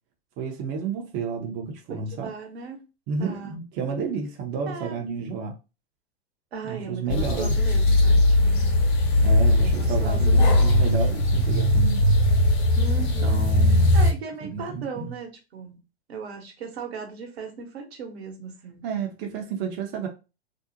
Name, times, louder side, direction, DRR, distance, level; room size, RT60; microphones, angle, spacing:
voice 1, 0.4-2.3 3.1-5.6 6.6-7.6 9.2-12.0 13.2-14.0 14.4-15.1 18.8-20.1, right 5 dB, 30° right, 0.5 m, -31 dB
voice 2, 2.1-2.8 3.2-3.5 4.6-5.0 6.5-8.8 9.6-10.8 12.7-15.8 16.1-18.8, right 5 dB, 70° right, 1.0 m, -37 dB
sound 1, 7.1-14.1, left 1 dB, 55° left, 0.9 m, -19 dB
2.5 x 2.1 x 2.7 m
hypercardioid pair, 110°, 32 cm